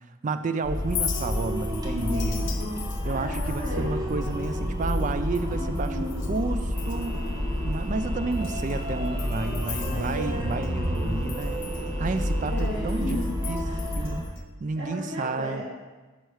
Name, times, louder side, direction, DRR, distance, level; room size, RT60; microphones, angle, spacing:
voice 1, 0.2-2.4 3.1-6.0 6.3-7.2 7.6-11.6 12.0-13.2 13.5-13.7 14.0-14.2 14.6-15.6, right 3 dB, 35° right, 10 dB, 0.3 m, -31 dB
sound 1, 0.6-14.2, equal, 15° right, 0.8 m, -29 dB
Chink clink, 0.8-6.4 6.7-7.3 7.7-7.8 8.3-10.7 10.9-14.4, left 10 dB, 55° left, 0.6 m, -40 dB
voice 2, 1.9-3.9 5.5-6.2 9.3-10.6 12.5-14.1 14.8-15.6, equal, 55° right, -10 dB, 1.8 m, -35 dB
sound 2, 6.7-12.7, equal, 85° right, 1.3 m, -41 dB
5.6 x 4.7 x 6.3 m, 1.2 s
head